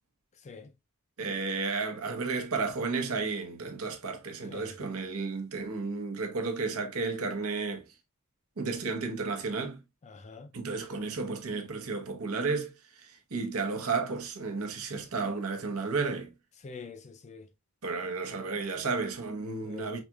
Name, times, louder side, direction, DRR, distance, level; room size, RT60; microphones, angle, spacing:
voice 1, 1.2-7.8 8.6-9.8 10.5-12.7 13.0-16.3 17.8-20.0, right 4 dB, 70° right, 0.9 m, -32 dB
voice 2, 4.4-4.8 10.0-10.5 16.6-17.5 19.6-19.9, left 4 dB, 30° left, 0.4 m, -46 dB
4.8 x 2.9 x 2.3 m
head